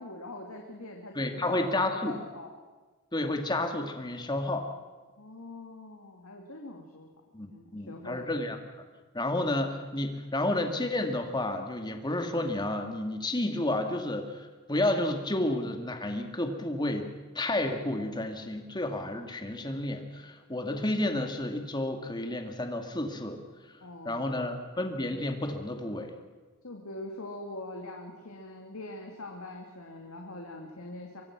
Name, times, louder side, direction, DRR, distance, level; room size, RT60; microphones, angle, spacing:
voice 1, 0.0-2.5 5.2-7.1 7.5-8.3 23.8-24.5 26.6-31.2, left 2 dB, 75° left, 1 dB, 2.5 m, -43 dB
voice 2, 1.1-2.1 3.1-4.7 7.3-8.6 9.1-17.1 17.3-23.4 24.0-26.1, left 1 dB, 20° left, 4 dB, 2.2 m, -31 dB
24.0 x 23.5 x 6.1 m, 1.3 s
head